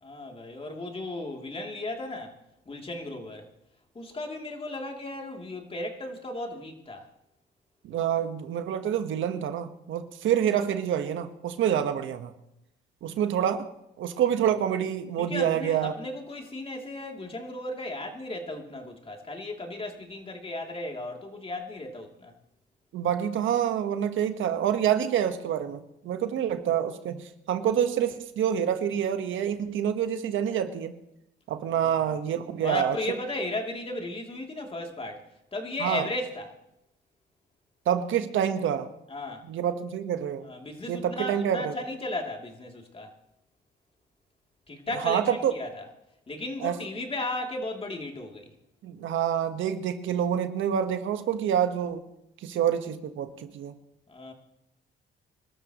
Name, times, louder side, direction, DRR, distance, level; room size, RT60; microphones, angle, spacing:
voice 1, 0.0-2.3 2.7-3.4 3.9-7.0 15.2-22.3 31.7-32.1 32.6-35.2 35.5-36.5 39.1-39.4 40.4-43.1 44.7-45.2 45.5-45.9 46.3-48.5 54.1-54.3, left 1 dB, 30° left, 2 dB, 3.0 m, -35 dB
voice 2, 7.8-12.3 13.0-13.7 14.0-15.9 22.9-31.0 31.5-33.0 35.8-36.1 37.8-38.9 39.4-40.5 40.9-41.7 44.9-45.5 46.6-46.8 48.8-52.0 52.4-53.7, right 9 dB, 75° right, 8 dB, 1.4 m, -27 dB
26.0 x 13.0 x 3.1 m, 0.83 s
cardioid pair, 90°, 20 cm